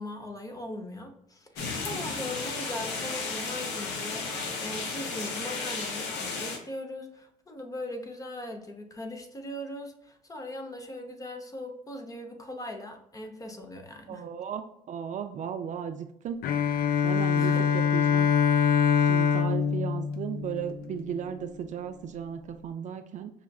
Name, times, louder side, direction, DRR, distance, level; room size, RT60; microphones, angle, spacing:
voice 1, 0.0-14.2 17.4-17.6, left 1 dB, 20° left, 4 dB, 0.7 m, -39 dB
sound 1, 1.6-6.6, left 4 dB, 90° left, 0.9 m, -34 dB
voice 2, 14.1-16.4 17.0-18.3 19.1-23.3, right 8 dB, 45° right, 8 dB, 0.4 m, -35 dB
Bowed string instrument, 16.4-21.1, left 7 dB, 65° left, 0.4 m, -24 dB
5.6 x 2.4 x 2.3 m, 0.79 s
cardioid pair, 110°, 17 cm